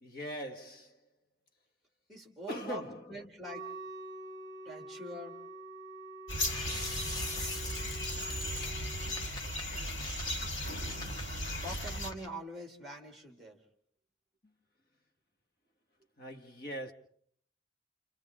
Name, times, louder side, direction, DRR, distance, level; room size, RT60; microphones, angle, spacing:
voice 1, 0.0-1.1 2.5-3.3 9.0-9.2 16.2-16.9, equal, 55° left, 1.9 m, -41 dB
voice 2, 2.1-2.8 3.1-3.7 4.6-5.4 11.6-13.6, right 1 dB, ahead, 3.1 m, -44 dB
Wind instrument woodwind instrument, 3.4-9.3, right 2 dB, 20° right, 1.6 m, -47 dB
sound 1, 6.3-12.1, left 1 dB, 85° left, 4.5 m, -36 dB
sound 2, 6.5-12.3, left 2 dB, 20° left, 1.3 m, -45 dB
29.5 x 29.0 x 3.8 m
head